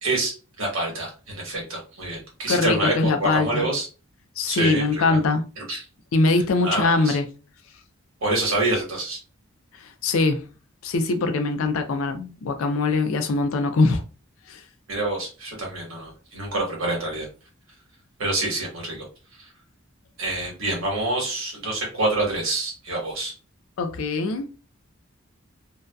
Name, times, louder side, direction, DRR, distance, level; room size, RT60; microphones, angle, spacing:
voice 1, 0.0-3.9 4.5-5.2 5.6-5.8 6.6-7.2 8.2-9.2 14.9-17.3 18.2-19.0 20.2-23.3, right 2 dB, 75° right, 1.2 m, -26 dB
voice 2, 2.5-3.7 4.4-5.4 6.1-7.2 10.0-10.4 10.8-14.0 14.5-14.6 23.8-24.5, left 3 dB, 70° left, 0.4 m, -22 dB
2.6 x 2.2 x 2.2 m
head